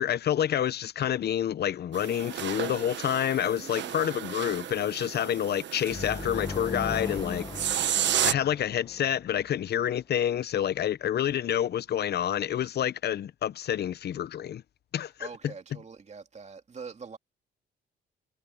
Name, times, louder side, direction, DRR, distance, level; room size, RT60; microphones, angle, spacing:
voice 1, 0.0-8.0 8.2-14.6 14.9-15.3, left 10 dB, 55° left, 0.8 m, -28 dB
sound 1, 1.9-8.3, right 10 dB, 65° right, 1.2 m, -32 dB
voice 2, 3.6-4.0 15.2-17.2, right 5 dB, 35° right, 2.7 m, -44 dB
sound 2, 5.9-9.6, left 3 dB, 20° left, 1.4 m, -38 dB
cardioid pair, 90°, 20 cm